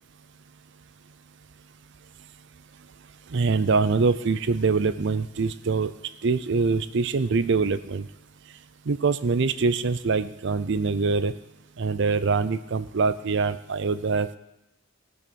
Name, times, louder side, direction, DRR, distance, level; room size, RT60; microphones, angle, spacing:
voice 1, 3.3-5.9 6.2-8.0 8.9-11.3 11.8-14.4, right 4 dB, 60° right, 14 dB, 0.5 m, -24 dB
15.5 x 6.3 x 6.8 m, 0.94 s
head